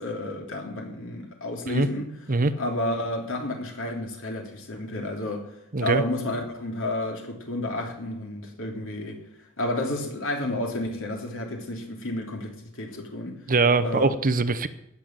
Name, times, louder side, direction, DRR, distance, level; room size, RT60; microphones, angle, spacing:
voice 1, 0.0-2.1 2.6-5.5 5.8-9.2 9.6-13.4 13.8-14.1, left 1 dB, 65° left, 3.2 m, -31 dB
voice 2, 13.5-14.7, right 3 dB, 40° right, 0.8 m, -22 dB
18.0 x 7.1 x 7.6 m
head